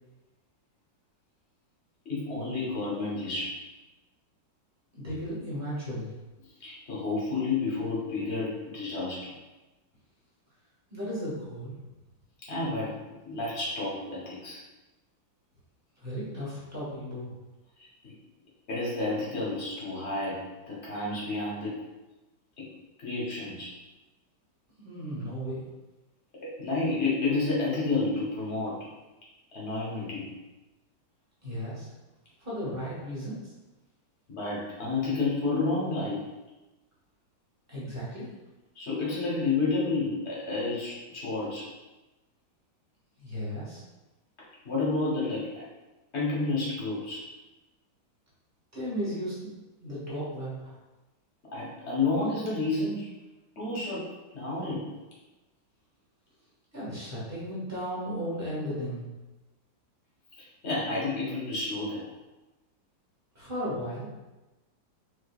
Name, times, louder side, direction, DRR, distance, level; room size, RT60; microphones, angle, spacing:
voice 1, 2.0-3.5 6.6-9.3 12.5-14.6 18.0-18.1 18.7-21.8 22.6-22.7 23.0-23.7 26.4-28.8 29.5-30.3 34.3-36.2 38.7-41.7 44.6-45.6 46.1-47.2 51.5-53.1 53.6-54.1 54.3-54.9 60.4-62.1, left 3 dB, 45° left, -6 dB, 1.0 m, -30 dB
voice 2, 5.0-6.1 10.9-11.7 16.0-17.3 24.8-25.6 31.4-31.9 32.4-33.5 37.7-38.3 43.2-43.8 48.7-49.5 49.8-50.7 56.7-59.1 63.3-64.1, equal, 10° right, -9 dB, 1.0 m, -35 dB
4.4 x 2.5 x 2.3 m, 1.1 s
omnidirectional pair, 2.0 m